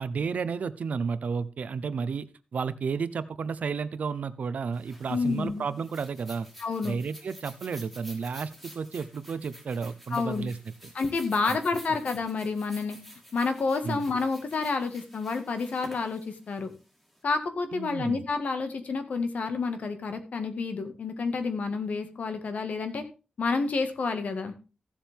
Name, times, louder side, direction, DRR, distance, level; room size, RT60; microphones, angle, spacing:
voice 1, 0.0-6.5 6.8-10.6 10.8-10.9 11.5-11.6 13.8-14.0 17.7-18.2, right 5 dB, 75° right, 15 dB, 0.8 m, -32 dB
sound 1, 4.7-17.2, equal, 10° left, 2.9 m, -50 dB
voice 2, 5.1-5.6 6.6-7.0 10.1-10.5 10.9-13.0 13.3-16.7 17.2-23.0 23.4-24.5, left 4 dB, 75° left, 8 dB, 1.7 m, -29 dB
15.5 x 7.3 x 3.6 m, 0.31 s
wide cardioid pair, 165°, 3 cm